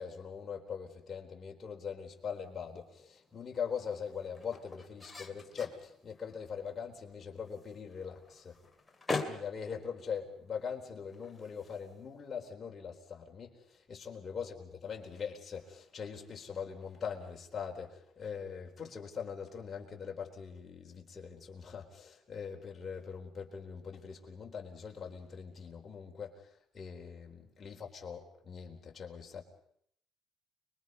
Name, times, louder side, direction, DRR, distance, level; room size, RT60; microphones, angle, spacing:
voice 1, 0.0-8.6 9.2-26.5 26.7-29.4, left 6 dB, 30° left, 0 dB, 4.1 m, -42 dB
sound 1, 2.2-12.5, left 3 dB, 10° left, 2.5 m, -45 dB
30.0 x 22.5 x 5.4 m, 0.69 s
cardioid pair, 125°, 0 cm